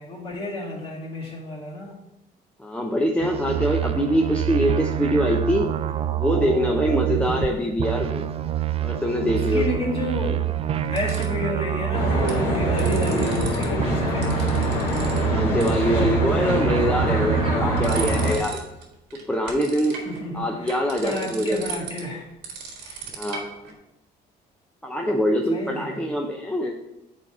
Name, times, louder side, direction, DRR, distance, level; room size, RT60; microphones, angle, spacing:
voice 1, 0.0-2.0 7.2-7.6 9.2-10.5 10.7-14.9 19.9-22.3 22.8-23.1 25.5-26.1, left 1 dB, 30° left, -4 dB, 2.1 m, -31 dB
voice 2, 2.6-5.7 6.1-8.3 8.8-9.6 14.2-14.5 15.2-18.6 19.1-20.0 20.3-21.6 23.1-23.6 24.8-26.7, equal, 5° left, 0 dB, 0.6 m, -24 dB
sound 1, 3.2-7.5 7.8-13.5 13.8-18.4, right 11 dB, 35° right, 0.3 m, -26 dB
sound 2, 10.3-11.5 12.0-12.4 12.7-13.7 13.9-15.3 15.6-15.7 16.1-16.7 17.2-18.8 19.1-23.7, right 6 dB, 90° right, 1.5 m, -37 dB
Traffic noise roadway noise, 11.9-18.4, left 1 dB, 90° left, 1.6 m, -25 dB
5.0 x 4.1 x 5.5 m, 0.89 s
cardioid pair, 110°, 17 cm